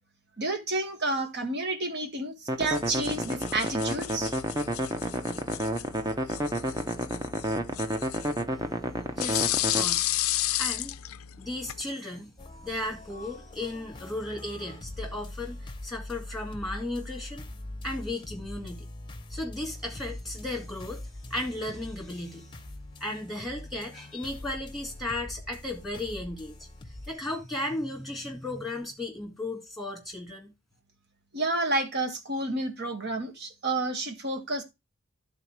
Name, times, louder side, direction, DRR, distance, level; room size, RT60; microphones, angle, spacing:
voice 1, 0.4-4.3 31.3-34.6, right 2 dB, 50° right, 1.7 m, -30 dB
sound 1, 2.5-9.8, right 1 dB, 20° right, 0.8 m, -30 dB
sound 2, 2.6-11.8, left 14 dB, 85° left, 0.5 m, -33 dB
voice 2, 9.1-10.2 10.6-10.9 11.4-12.3 12.6-17.4 17.8-18.9 19.3-22.5 23.0-26.6 26.9-30.5, left 1 dB, ahead, 2.0 m, -35 dB
sound 3, 12.4-27.1, left 1 dB, 20° left, 0.8 m, -43 dB
12.0 x 4.1 x 4.5 m
head